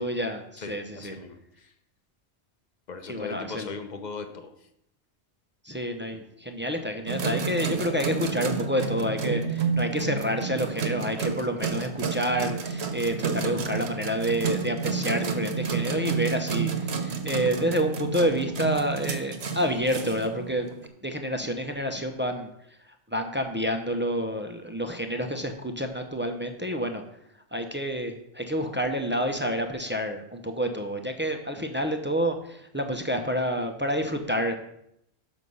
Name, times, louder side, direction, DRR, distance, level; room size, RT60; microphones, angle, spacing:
voice 1, 0.0-1.1 3.1-3.7 5.6-20.7 21.0-22.5 23.1-27.0 27.5-34.5, equal, 15° right, 4 dB, 0.5 m, -28 dB
voice 2, 0.6-1.7 2.9-4.5 6.1-6.2, left 4 dB, 45° left, 8 dB, 0.8 m, -38 dB
sound 1, 7.1-20.9, right 5 dB, 70° right, 1.2 m, -30 dB
6.4 x 6.2 x 5.4 m, 0.76 s
omnidirectional pair, 1.2 m